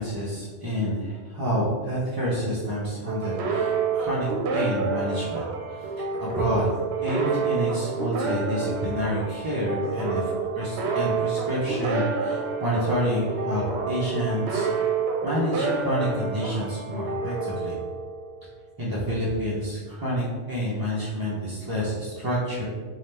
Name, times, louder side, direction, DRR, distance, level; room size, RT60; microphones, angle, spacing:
voice 1, 0.0-5.9 6.2-6.7 7.0-14.7 15.2-17.7 18.8-22.7, equal, 35° right, -7 dB, 0.3 m, -28 dB
sound 1, 3.1-18.4, right 5 dB, 65° right, 0.8 m, -28 dB
3.4 x 2.3 x 4.2 m, 1.5 s
omnidirectional pair, 1.3 m